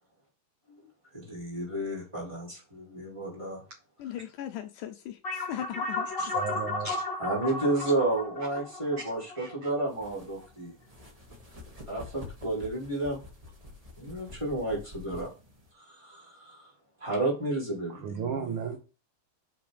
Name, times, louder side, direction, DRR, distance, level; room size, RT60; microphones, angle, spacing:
voice 1, 1.1-3.6 7.2-10.7 11.9-13.2 14.0-15.3 15.7-16.7 17.0-18.1, right 2 dB, 10° right, 4.2 m, -31 dB
voice 2, 4.0-6.4, left 11 dB, 75° left, 2.0 m, -39 dB
sound 1, 5.2-10.1, left 3 dB, 35° left, 2.5 m, -34 dB
voice 3, 6.2-7.0 9.4-9.5 18.0-18.8, right 6 dB, 70° right, 1.3 m, -34 dB
sound 2, 9.9-15.7, left 2 dB, 50° right, 0.4 m, -48 dB
6.8 x 6.0 x 5.1 m
omnidirectional pair, 3.9 m